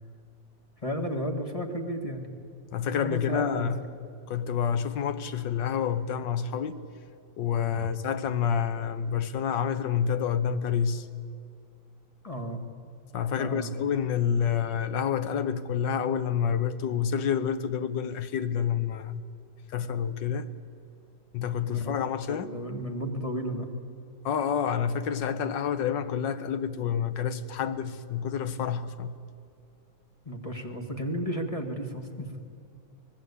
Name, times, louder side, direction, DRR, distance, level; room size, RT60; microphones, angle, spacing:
voice 1, 0.8-2.3 3.0-3.7 7.7-7.9 12.2-12.6 13.4-13.7 21.6-21.9 22.3-23.7 30.3-32.3, equal, 20° left, 1.9 m, -33 dB
voice 2, 2.7-3.8 4.3-6.8 7.4-11.1 13.1-19.2 19.7-20.5 21.3-22.5 24.2-29.1, left 7 dB, 75° left, 1.7 m, -28 dB
25.0 x 19.0 x 8.4 m
omnidirectional pair, 2.0 m